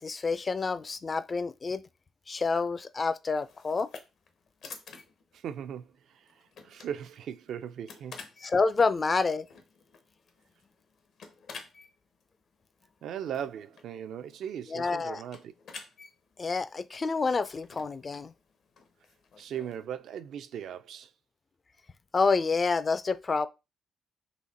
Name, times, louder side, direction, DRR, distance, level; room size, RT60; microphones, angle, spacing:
voice 1, 0.0-1.8 2.3-3.9 8.4-9.5 14.7-15.2 16.4-18.3 22.1-23.5, left 4 dB, 35° left, 0.4 m, -28 dB
sound 1, 3.4-19.9, left 5 dB, 70° left, 0.9 m, -51 dB
voice 2, 5.3-6.3 6.6-8.2 13.0-15.5 19.4-21.1, right 9 dB, 70° right, 0.4 m, -38 dB
4.0 x 2.8 x 4.1 m
cardioid pair, 90°, 0 cm